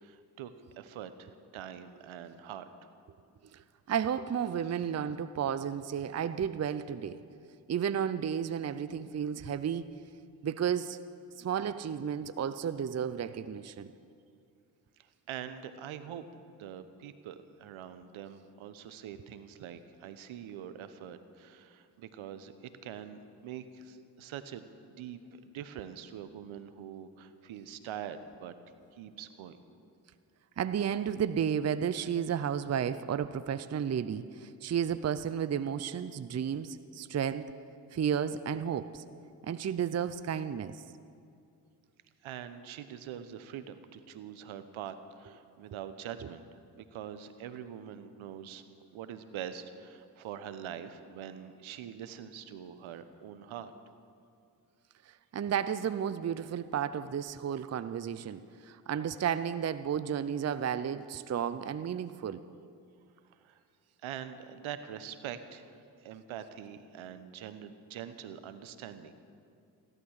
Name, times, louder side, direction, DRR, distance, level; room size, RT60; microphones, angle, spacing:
voice 1, 0.0-2.7 15.0-22.5 22.8-25.2 25.5-28.5 28.9-29.6 42.2-46.4 46.8-48.6 48.9-53.7 63.3-63.6 64.0-65.7 66.0-69.1, right 9 dB, 70° right, 11 dB, 1.1 m, -44 dB
voice 2, 3.5-7.2 7.7-9.9 10.4-11.0 11.4-13.9 30.6-37.5 37.9-39.0 39.4-40.8 55.1-62.4, right 8 dB, 30° right, 14 dB, 0.6 m, -32 dB
16.0 x 12.0 x 6.5 m, 2.4 s
hypercardioid pair, 45°, 49 cm